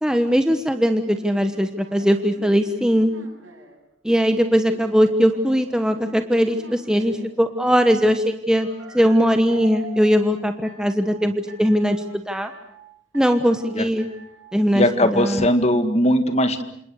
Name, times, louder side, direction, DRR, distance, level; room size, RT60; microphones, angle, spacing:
voice 1, 0.0-3.1 4.0-8.7 8.9-12.5 13.1-14.1 14.5-15.5, equal, 5° right, 7 dB, 1.2 m, -20 dB
sound 1, 0.8-3.8 4.3-7.3 8.5-10.2 10.6-11.1 11.5-12.0 12.3-12.8 13.1-13.7 14.0-14.4 14.8-15.3, right 2 dB, 85° right, 7.9 m, -44 dB
voice 2, 14.7-16.6, left 1 dB, 35° left, 9 dB, 2.0 m, -19 dB
27.5 x 27.5 x 6.6 m, 0.71 s
head